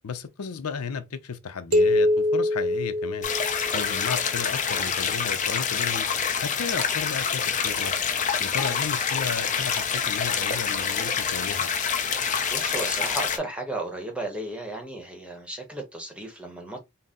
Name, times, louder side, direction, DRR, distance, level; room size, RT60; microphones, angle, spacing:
voice 1, 0.0-3.3 3.7-6.1 6.4-7.9 8.4-11.7, left 6 dB, 85° left, 0.6 m, -34 dB
sound 1, 1.7-4.1, left 1 dB, 75° right, 0.9 m, -24 dB
sound 2, 3.2-13.4, left 6 dB, 35° left, 0.5 m, -26 dB
voice 2, 12.5-16.8, right 2 dB, 5° right, 0.8 m, -34 dB
4.1 x 2.0 x 3.6 m
head